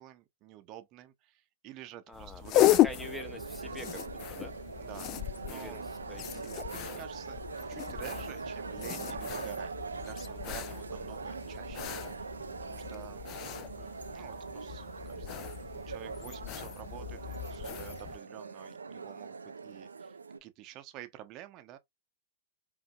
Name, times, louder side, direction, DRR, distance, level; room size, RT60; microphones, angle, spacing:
voice 1, 0.0-2.9 4.8-5.8 6.5-7.4 7.6-12.3 12.6-13.2 14.1-19.3 19.6-21.8, right 13 dB, 40° right, 0.7 m, -49 dB
sound 1, 2.1-18.2, left 14 dB, 40° left, 0.4 m, -34 dB
voice 2, 2.1-2.4 2.8-4.5 5.5-5.8 6.1-7.0 13.6-13.9, left 1 dB, 5° left, 0.8 m, -46 dB
sound 2, 2.9-20.4, right 5 dB, 90° right, 0.4 m, -42 dB
5.1 x 2.7 x 2.3 m
hypercardioid pair, 105°, 0 cm